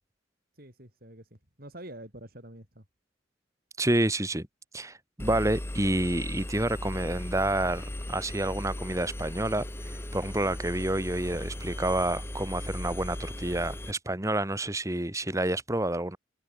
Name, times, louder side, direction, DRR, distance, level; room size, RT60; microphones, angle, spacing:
voice 1, 0.6-2.9, right 1 dB, 50° right, 7.6 m, -47 dB
voice 2, 3.8-4.5 4.7-16.2, right 1 dB, 15° right, 1.8 m, -29 dB
Engine, 5.2-13.9, left 1 dB, 15° left, 0.9 m, -37 dB
head